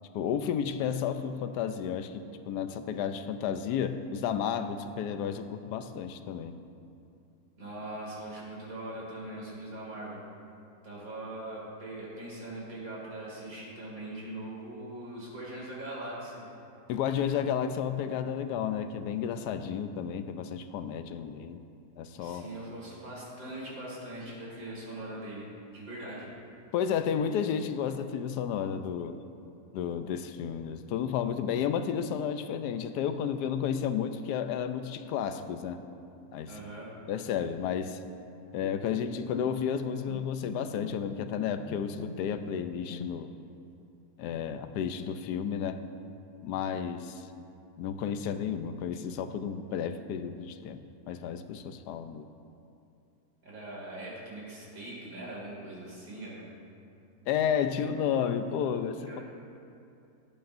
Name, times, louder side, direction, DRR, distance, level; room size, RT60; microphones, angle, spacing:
voice 1, 0.1-6.6 16.9-21.6 22.0-22.5 26.7-29.2 29.7-35.8 36.3-36.5 37.1-38.0 38.5-43.3 44.2-45.8 46.4-47.3 47.8-52.3 57.3-59.2, left 8 dB, 85° left, 9 dB, 1.2 m, -32 dB
voice 2, 7.6-10.2 10.8-16.4 22.2-25.5 25.7-26.3 36.5-36.9 53.4-56.5 57.2-57.3 59.1-59.2, right 1 dB, 60° right, -5 dB, 2.9 m, -41 dB
Bowed string instrument, 38.6-43.5, left 3 dB, 60° left, 0.6 m, -44 dB
17.0 x 8.8 x 2.6 m, 2.6 s
omnidirectional pair, 1.7 m